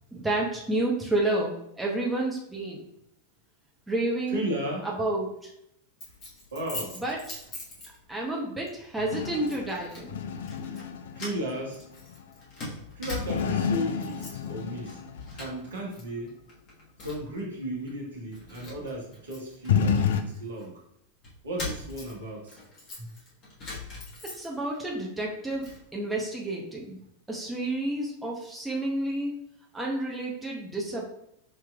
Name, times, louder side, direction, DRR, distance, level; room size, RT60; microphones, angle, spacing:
voice 1, 0.1-2.8 3.9-4.4 4.8-5.5 6.9-7.4 8.1-10.2 24.2-25.6 25.9-27.0 27.3-29.3 29.7-31.1, right 2 dB, 5° right, -3 dB, 0.8 m, -30 dB
voice 2, 4.3-4.9 6.5-6.9 11.1-11.8 12.9-15.0 15.3-16.4 17.0-20.7 21.4-22.6 23.0-23.1, equal, 65° right, -2 dB, 1.1 m, -35 dB
Keys jangling, 6.0-8.3 8.7-8.9 9.5-10.1 10.4-10.9 11.1-13.6 14.0-14.5 14.8-16.0 16.3-17.4 17.9-18.0 18.3-20.7 21.2-24.8 25.2-25.8, left 2 dB, 35° left, 1.3 m, -41 dB
Guitar Experiment, 9.0-12.2 13.2-15.4 19.7-20.2, left 7 dB, 60° left, 0.3 m, -29 dB
5.2 x 2.9 x 2.3 m, 0.76 s
figure-of-eight pair, 90°, 0 cm